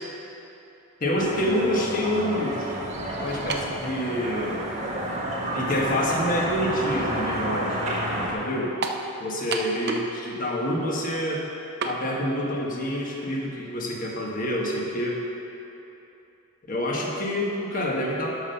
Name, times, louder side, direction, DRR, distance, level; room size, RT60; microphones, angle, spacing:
voice 1, 1.0-2.7 3.2-4.7 5.5-7.9 8.3-8.8 9.2-11.5 11.8-15.2 16.7-18.3, left 1 dB, 40° left, -2 dB, 1.4 m, -27 dB
sound 1, 1.2-8.3, right 1 dB, 30° right, 1.4 m, -30 dB
sound 2, 3.5-3.8 4.7-4.8 8.8-9.1 9.5-10.2 10.4-10.5 11.8-12.0, right 4 dB, 50° right, 0.7 m, -29 dB
12.0 x 5.5 x 5.7 m, 2.9 s
head